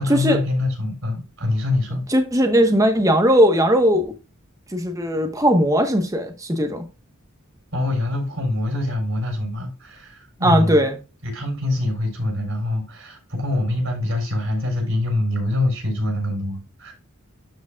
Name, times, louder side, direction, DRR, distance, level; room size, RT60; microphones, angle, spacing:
voice 1, 0.0-2.0 7.7-10.9 11.2-16.9, left 2 dB, 65° right, 3.9 m, -24 dB
voice 2, 2.1-4.1 4.7-6.8 10.4-11.0, equal, 15° right, 1.2 m, -18 dB
12.5 x 5.2 x 2.4 m
head